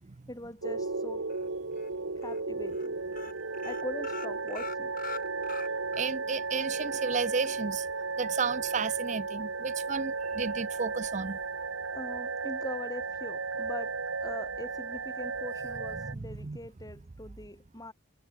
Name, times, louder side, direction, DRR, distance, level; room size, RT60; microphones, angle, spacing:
voice 1, 0.3-1.3 2.2-3.0 3.6-4.9 11.9-17.9, left 1 dB, 20° left, 7.9 m, -42 dB
sound 1, 0.6-16.1, right 4 dB, 90° right, 1.6 m, -34 dB
sound 2, 1.3-1.9 2.2-2.4 2.7-2.9 3.1-6.1 6.5-6.6 7.0-7.1, left 6 dB, 45° left, 7.1 m, -43 dB
voice 2, 5.9-7.9 8.2-11.4 16.0-16.6, right 5 dB, 35° right, 0.6 m, -33 dB
head